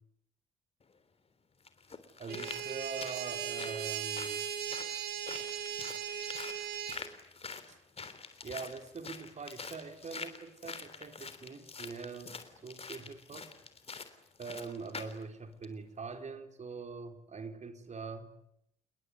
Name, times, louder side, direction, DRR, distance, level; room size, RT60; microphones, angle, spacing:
sound 1, 0.8-0.9 1.6-15.2 15.6-15.7, left 4 dB, 35° left, 3.4 m, -46 dB
voice 1, 2.2-4.4 7.7-7.8 8.4-12.4 12.6-13.5 14.4-18.3, right 4 dB, 40° right, 6 dB, 4.0 m, -43 dB
sound 2, 2.3-7.0, right 9 dB, 65° right, 2.8 m, -38 dB
29.0 x 21.0 x 9.4 m, 0.76 s
hypercardioid pair, 45°, 17 cm